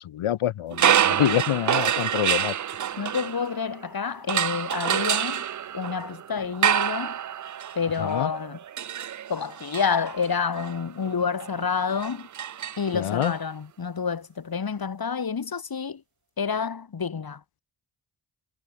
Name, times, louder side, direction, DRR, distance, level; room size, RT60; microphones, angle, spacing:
voice 1, 0.0-2.5 8.0-8.3 12.9-13.3, left 12 dB, 75° left, 0.9 m, -26 dB
sound 1, 0.7-3.8 4.3-13.3, right 10 dB, 40° right, 0.4 m, -27 dB
voice 2, 3.0-5.4 5.7-7.2 7.7-8.6 9.3-12.3 12.8-16.0 16.4-17.6, left 6 dB, 45° left, 1.7 m, -28 dB
cardioid pair, 55°, 50 cm